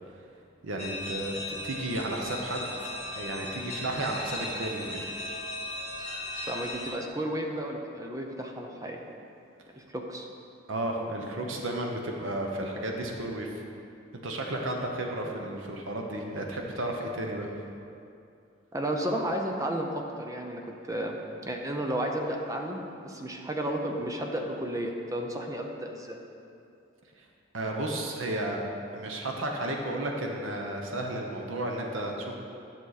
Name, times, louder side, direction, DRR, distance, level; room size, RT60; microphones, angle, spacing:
voice 1, 0.6-5.1 10.7-13.5 14.2-17.5 27.5-28.6 28.9-32.3, right 1 dB, 80° right, 1 dB, 0.9 m, -33 dB
sound 1, 0.8-6.9, left 1 dB, 35° left, 1.7 m, -37 dB
voice 2, 6.5-9.0 9.8-10.3 18.7-20.6 20.9-21.2 21.4-26.2, right 1 dB, 15° right, 2 dB, 0.6 m, -32 dB
10.5 x 6.3 x 4.1 m, 2.6 s
head